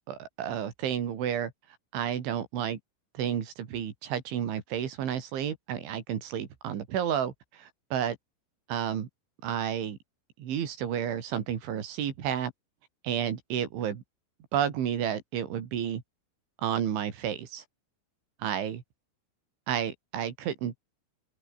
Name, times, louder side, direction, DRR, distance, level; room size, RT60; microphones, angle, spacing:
voice 1, 0.0-1.5 1.9-2.8 3.1-8.2 8.7-9.1 9.4-10.0 10.4-12.5 13.0-14.0 14.5-16.0 16.6-17.6 18.4-18.8 19.7-20.8, right 9 dB, 65° right, 5.1 m, -31 dB
open air
omnidirectional pair, 5.9 m